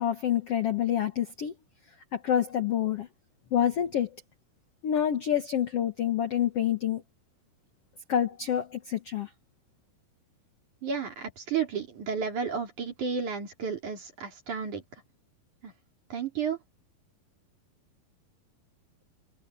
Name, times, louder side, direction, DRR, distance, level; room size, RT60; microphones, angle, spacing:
voice 1, 0.0-1.5 2.1-3.1 3.5-4.2 4.8-7.0 8.1-9.3, left 9 dB, 60° left, 1.6 m, -27 dB
voice 2, 10.8-14.8 15.6-15.7 16.1-16.6, right 6 dB, 50° right, 4.8 m, -32 dB
omnidirectional pair, 4.4 m